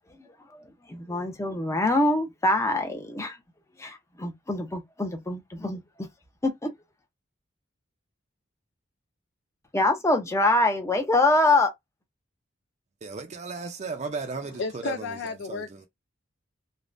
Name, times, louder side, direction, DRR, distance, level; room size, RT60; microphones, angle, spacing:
voice 1, 0.2-0.6 0.9-3.4 3.8-6.1 6.4-6.7 9.7-11.7, left 2 dB, 15° left, 0.6 m, -25 dB
voice 2, 13.0-14.9 15.5-15.6, right 4 dB, 35° right, 0.5 m, -34 dB
voice 3, 14.2-15.9, left 5 dB, 60° left, 0.3 m, -34 dB
3.4 x 2.1 x 2.5 m
head